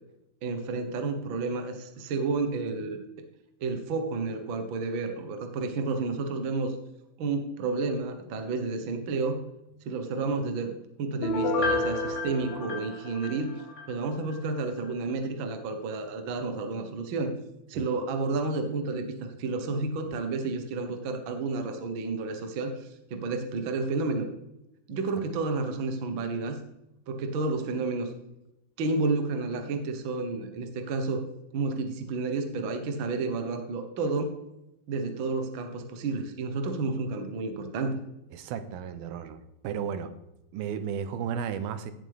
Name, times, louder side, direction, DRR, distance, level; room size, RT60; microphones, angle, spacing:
voice 1, 0.4-3.2 3.6-6.8 7.2-9.4 9.8-10.7 11.0-13.6 13.9-17.3 17.7-24.3 24.9-26.6 27.1-28.1 28.8-31.2 31.5-34.3 34.9-38.0, right 3 dB, 70° right, 6 dB, 1.1 m, -31 dB
Piano, 11.2-13.9 14.3-14.4, left 2 dB, 70° left, 3.4 m, -30 dB
voice 2, 38.3-40.1 40.5-41.9, right 7 dB, 85° right, 11 dB, 2.7 m, -34 dB
16.0 x 7.7 x 3.5 m, 0.89 s
omnidirectional pair, 4.3 m